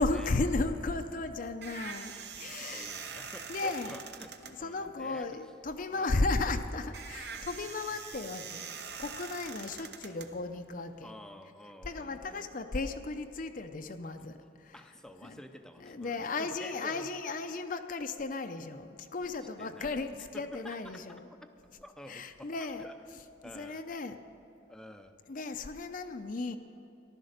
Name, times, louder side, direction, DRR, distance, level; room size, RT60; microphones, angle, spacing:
voice 1, 0.0-2.9 3.5-4.0 4.4-8.7 9.0-11.1 11.8-14.8 15.2-15.4 15.8-21.3 22.1-22.9 23.5-24.2 25.3-26.6, left 3 dB, 45° left, 7 dB, 0.6 m, -35 dB
sound 1, 1.0-11.0, right 6 dB, 55° right, 0.9 m, -45 dB
voice 2, 2.5-4.3 4.6-5.4 5.9-6.3 11.0-12.5 14.2-14.3 14.7-17.1 19.6-21.5 21.8-23.8 24.7-25.2, equal, 5° left, 7 dB, 0.6 m, -50 dB
14.5 x 12.0 x 6.5 m, 2.9 s
head